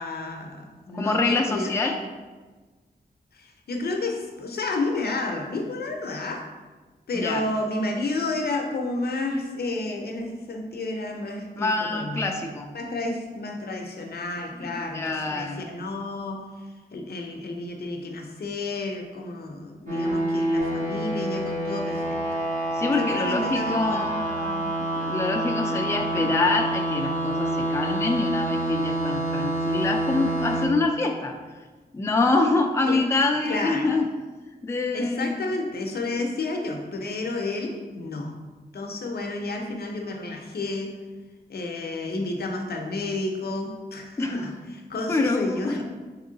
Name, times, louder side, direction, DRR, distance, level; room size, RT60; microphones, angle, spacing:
voice 1, 0.0-2.0 3.3-6.5 7.1-12.3 12.7-22.2 23.0-24.1 26.1-26.3 32.9-33.0 33.4-33.9 34.9-38.3 38.7-41.0 41.5-45.8, left 2 dB, 70° left, 2 dB, 0.6 m, -31 dB
voice 2, 0.9-2.0 7.1-7.4 11.6-12.7 14.6-15.7 22.7-31.4 31.9-34.1 34.6-35.3 44.2-44.3 45.1-45.6, left 3 dB, 15° left, 3 dB, 0.4 m, -25 dB
sound 1, 19.9-30.7, right 1 dB, 45° right, 1.3 m, -27 dB
3.7 x 3.0 x 3.8 m, 1.3 s
wide cardioid pair, 80°, 17 cm